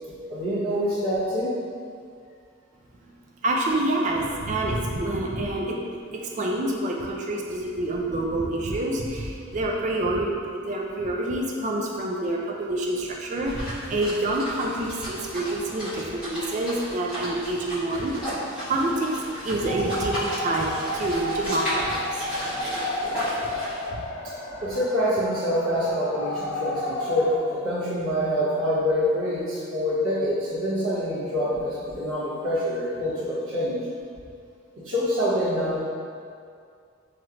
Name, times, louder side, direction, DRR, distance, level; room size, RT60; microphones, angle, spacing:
voice 1, 0.3-1.5 24.6-33.8 34.8-35.8, equal, 85° right, -10 dB, 1.1 m, -26 dB
voice 2, 3.4-18.1 18.7-19.1 19.4-22.3 23.9-24.0, right 1 dB, 35° right, -1 dB, 0.3 m, -27 dB
sound 1, 13.4-23.9, equal, 5° right, 1.3 m, -34 dB
sound 2, 19.7-27.4, left 1 dB, 55° left, 0.4 m, -32 dB
3.1 x 2.9 x 2.5 m, 2.3 s
head